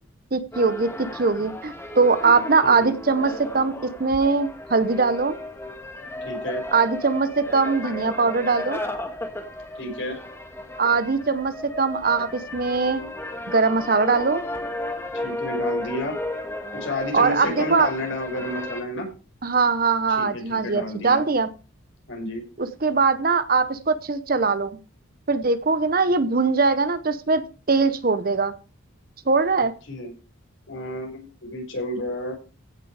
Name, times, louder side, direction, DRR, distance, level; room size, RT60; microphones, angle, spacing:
voice 1, 0.3-3.7 4.0-5.4 6.7-8.8 10.8-13.0 13.5-14.4 17.1-17.9 19.4-21.5 22.6-24.7 25.3-28.5 29.3-29.7, right 4 dB, 45° right, 12 dB, 0.8 m, -21 dB
sound 1, 0.5-18.8, left 1 dB, 10° left, 1.8 m, -34 dB
voice 2, 2.6-2.9 6.2-6.6 9.8-10.2 15.2-16.2 16.7-19.1 20.2-21.3 22.1-22.4 29.9-30.1 30.7-32.3, left 1 dB, 65° left, 1 dB, 5.5 m, -30 dB
16.0 x 6.9 x 4.8 m, 0.34 s
head